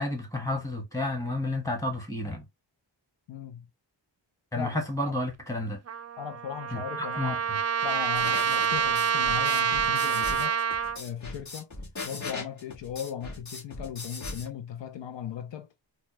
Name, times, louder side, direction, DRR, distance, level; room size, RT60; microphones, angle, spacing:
voice 1, 0.0-2.5 4.5-5.8 6.7-7.4, left 1 dB, 5° left, 1.5 m, -31 dB
voice 2, 3.3-3.7 4.6-5.2 6.2-7.4 7.8-10.6 11.0-11.7 12.0-15.7, left 9 dB, 70° left, 0.6 m, -38 dB
Trumpet, 5.9-11.0, right 7 dB, 35° right, 0.4 m, -27 dB
sound 1, 8.1-14.5, left 3 dB, 40° left, 1.9 m, -39 dB
4.1 x 2.3 x 3.1 m
wide cardioid pair, 100°, 45 cm